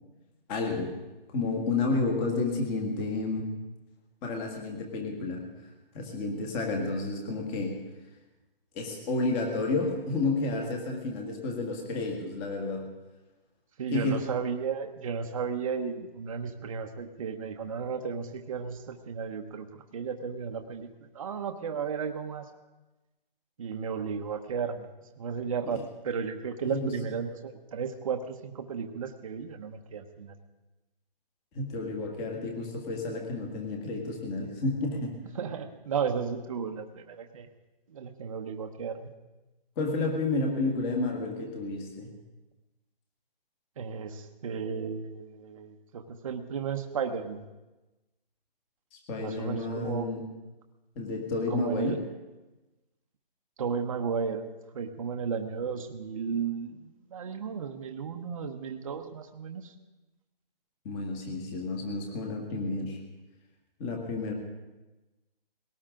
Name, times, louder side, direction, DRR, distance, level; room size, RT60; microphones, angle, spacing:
voice 1, 0.5-0.9 1.3-3.5 4.2-5.4 5.9-7.8 8.7-12.8 13.9-14.2 26.7-26.9 31.6-35.1 39.8-42.1 48.9-50.2 51.0-52.0 60.9-63.0 63.8-64.3, left 3 dB, 15° left, 2 dB, 1.8 m, -31 dB
voice 2, 13.8-19.7 19.9-20.9 21.1-22.4 23.6-24.9 25.2-30.3 35.3-37.5 37.9-39.1 43.8-47.4 49.2-50.1 51.5-52.0 53.6-54.5 54.7-59.7, right 6 dB, 35° right, 5 dB, 1.1 m, -34 dB
20.5 x 18.0 x 3.8 m, 1.1 s
hypercardioid pair, 165°, 29 cm